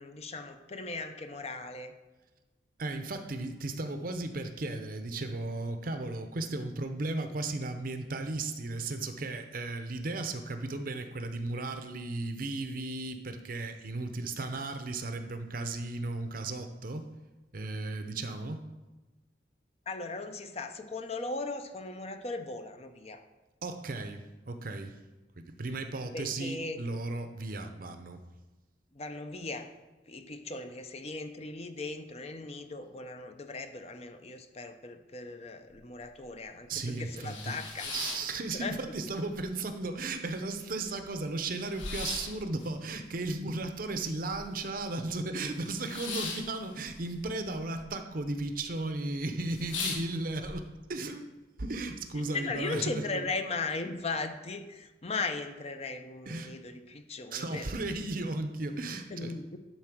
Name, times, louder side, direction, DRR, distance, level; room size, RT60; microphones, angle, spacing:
voice 1, 0.0-1.9 19.9-23.2 26.1-26.8 28.9-29.7 30.1-37.9 38.5-38.7 52.3-57.7 59.1-59.6, left 3 dB, 30° left, 7 dB, 0.6 m, -38 dB
voice 2, 2.8-17.1 17.5-18.6 23.6-25.0 25.4-28.2 36.7-51.3 51.6-53.3 56.3-56.5 57.3-59.4, right 2 dB, 45° right, 7 dB, 0.7 m, -35 dB
sound 1, 35.7-35.8 36.2-36.3 36.8-39.0 39.3-40.0 40.4-40.5 40.6-44.8 45.1-47.9 48.1-48.7 49.1-49.2 49.5-50.5, left 4 dB, 80° left, 1.6 m, -40 dB
11.0 x 4.3 x 6.0 m, 1.2 s
head